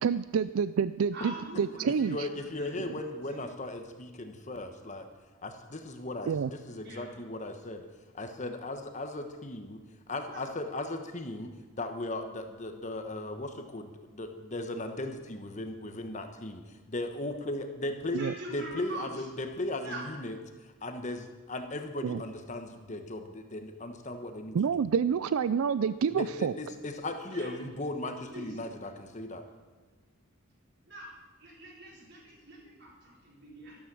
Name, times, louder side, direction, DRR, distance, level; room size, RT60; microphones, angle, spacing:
voice 1, 0.0-2.3 6.3-6.5 18.1-18.3 22.0-22.2 24.5-26.5, right 6 dB, 80° right, 15 dB, 0.4 m, -28 dB
voice 2, 1.1-2.8 3.2-3.5 6.8-7.1 10.3-10.5 18.1-19.3 19.8-20.1 27.3-27.5 28.3-28.6 30.8-33.8, right 1 dB, 55° right, -3 dB, 4.5 m, -44 dB
voice 3, 1.9-5.1 5.4-7.9 8.1-9.8 10.1-18.2 18.5-20.3 20.8-24.8 26.1-29.4, left 2 dB, 35° left, 6 dB, 1.1 m, -37 dB
13.0 x 12.5 x 6.2 m, 1.4 s
head